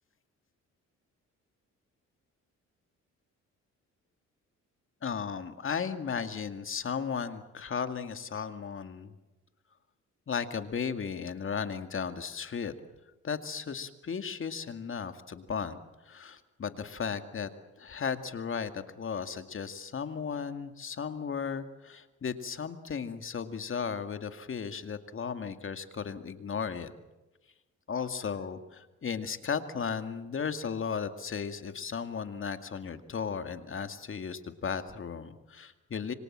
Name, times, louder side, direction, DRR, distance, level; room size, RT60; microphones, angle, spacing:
voice 1, 5.0-9.1 10.3-12.7 13.2-17.5 17.8-26.9 27.9-36.1, left 6 dB, 45° left, 8 dB, 2.2 m, -35 dB
27.0 x 24.5 x 7.5 m, 1.1 s
cardioid pair, 90°, 30 cm